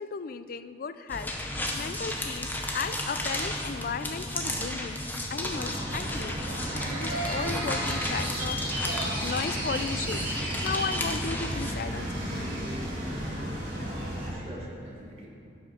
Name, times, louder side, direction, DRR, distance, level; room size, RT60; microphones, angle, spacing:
voice 1, 0.0-1.3 1.7-5.0 5.3-10.3 10.6-12.7, left 5 dB, 50° left, 12 dB, 0.3 m, -35 dB
sound 1, 1.1-11.7, left 1 dB, 10° left, 0.7 m, -34 dB
sound 2, 5.5-14.3, right 1 dB, 50° right, 2.6 m, -33 dB
voice 2, 13.8-15.3, right 1 dB, 30° right, -4 dB, 1.9 m, -45 dB
10.5 x 5.8 x 5.8 m, 2.6 s
head